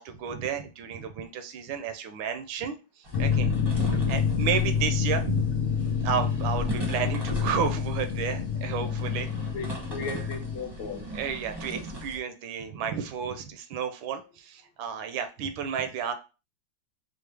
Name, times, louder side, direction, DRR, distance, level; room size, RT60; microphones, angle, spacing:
voice 1, 0.0-5.5 6.0-9.3 11.1-16.1, right 7 dB, 80° right, 8 dB, 1.4 m, -32 dB
sound 1, 3.0-12.2, equal, 25° right, 0.5 m, -39 dB
sound 2, 3.1-10.6, left 6 dB, 85° left, 1.4 m, -27 dB
voice 2, 9.5-11.1, left 5 dB, 70° left, 3 dB, 1.1 m, -36 dB
4.9 x 2.0 x 3.2 m, 0.32 s
omnidirectional pair, 2.2 m